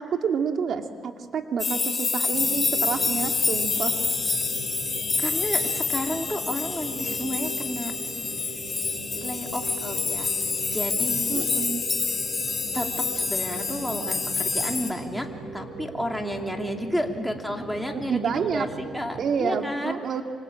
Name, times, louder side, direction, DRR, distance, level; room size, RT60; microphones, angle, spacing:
voice 1, 0.0-4.0 11.3-11.9 18.1-18.7 19.2-20.2, right 6 dB, 60° right, 5 dB, 2.2 m, -28 dB
sound 1, 1.6-14.9, left 4 dB, 35° left, 3.8 m, -27 dB
sound 2, 2.3-19.2, right 3 dB, 75° right, 6.5 m, -40 dB
voice 2, 5.2-7.9 9.2-10.3 10.7-11.5 12.7-12.9 13.1-15.3 15.5-18.2 18.5-20.0, equal, ahead, 2 dB, 3.0 m, -31 dB
26.5 x 25.5 x 8.8 m, 2.2 s
cardioid pair, 90°, 0 cm